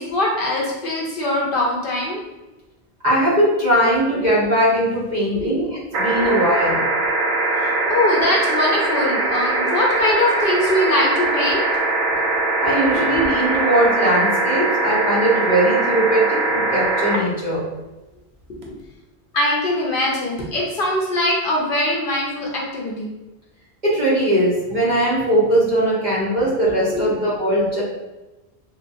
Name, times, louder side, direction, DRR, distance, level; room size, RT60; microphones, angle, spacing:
voice 1, 0.0-2.2 5.3-5.6 7.6-11.6 12.9-13.0 19.3-23.1 26.9-27.0, left 1 dB, 65° left, -2 dB, 0.8 m, -22 dB
voice 2, 3.0-6.9 12.6-17.6 23.8-27.8, right 1 dB, 45° right, -7 dB, 1.0 m, -19 dB
sound 1, 5.9-17.2 18.6-18.7, right 2 dB, 85° right, 0.9 m, -21 dB
3.1 x 2.2 x 2.5 m, 1.1 s
omnidirectional pair, 1.1 m